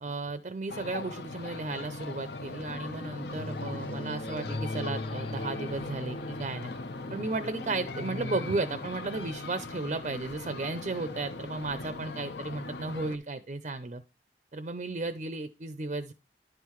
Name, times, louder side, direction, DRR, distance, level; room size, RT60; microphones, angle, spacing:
voice 1, 0.0-6.7 7.1-14.0 14.5-16.1, right 3 dB, 40° right, 11 dB, 0.5 m, -34 dB
sound 1, 0.7-13.2, left 2 dB, 70° left, 0.7 m, -40 dB
sound 2, 3.4-8.9, left 2 dB, 30° left, 0.4 m, -39 dB
10.5 x 5.6 x 3.1 m, 0.29 s
head